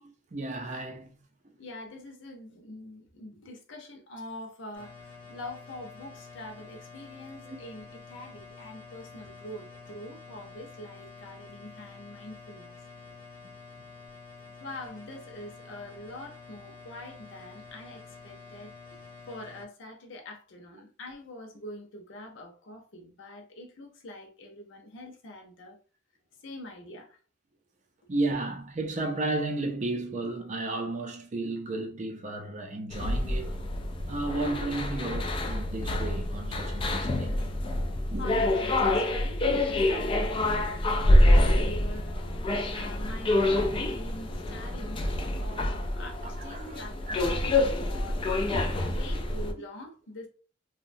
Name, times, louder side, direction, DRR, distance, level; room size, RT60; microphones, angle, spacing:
voice 1, 0.0-1.1 7.4-7.6 28.1-33.5 34.1-37.3 38.1-38.2 46.2-46.8 47.3-47.4 48.5-48.8, right 2 dB, 35° right, 0.4 m, -33 dB
voice 2, 1.6-12.8 14.6-19.0 19.3-25.8 26.4-27.2 38.2-42.2 42.7-48.3 48.8-50.3, left 1 dB, 65° left, 0.7 m, -44 dB
sound 1, 4.7-19.6, left 4 dB, 10° left, 0.8 m, -48 dB
sound 2, 32.9-49.5, left 1 dB, 25° left, 0.3 m, -26 dB
2.7 x 2.1 x 2.6 m
head